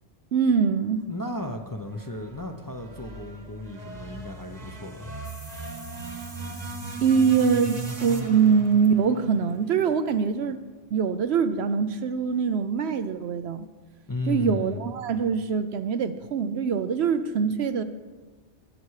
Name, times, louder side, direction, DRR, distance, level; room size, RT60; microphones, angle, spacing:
voice 1, 0.3-1.0 7.0-10.6 10.9-13.7 14.3-17.8, right 6 dB, 70° right, 11 dB, 0.9 m, -23 dB
voice 2, 1.1-5.1 14.1-14.9, left 2 dB, 20° left, 4 dB, 0.7 m, -34 dB
sound 1, 1.9-10.2, right 3 dB, 35° right, 1.3 m, -38 dB
sound 2, 5.2-10.3, right 1 dB, 15° right, 1.0 m, -50 dB
19.5 x 7.0 x 4.8 m, 1.3 s
omnidirectional pair, 1.2 m